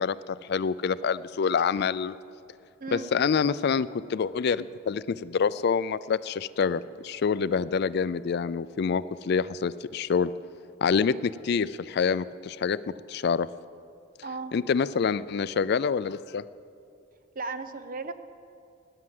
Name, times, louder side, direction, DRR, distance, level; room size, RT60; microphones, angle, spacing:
voice 1, 0.0-2.1 2.9-10.3 10.8-12.8 13.1-13.5 14.5-16.4, left 6 dB, 55° left, 17 dB, 0.4 m, -26 dB
voice 2, 14.2-14.5 17.3-18.1, right 3 dB, 45° right, 11 dB, 0.8 m, -35 dB
17.0 x 10.5 x 7.6 m, 2.6 s
head